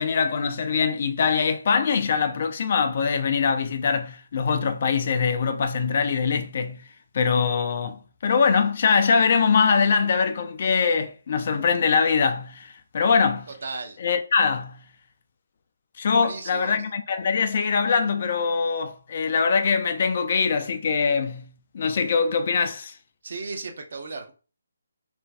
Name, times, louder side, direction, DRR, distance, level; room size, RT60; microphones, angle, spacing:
voice 1, 0.0-6.8 7.1-13.5 14.0-14.8 16.0-23.0, left 5 dB, 40° left, 0.3 m, -23 dB
voice 2, 13.6-14.0 16.2-16.8 23.2-24.3, right 3 dB, 50° right, 0.6 m, -35 dB
2.5 x 2.2 x 3.3 m
figure-of-eight pair, 145°, 0 cm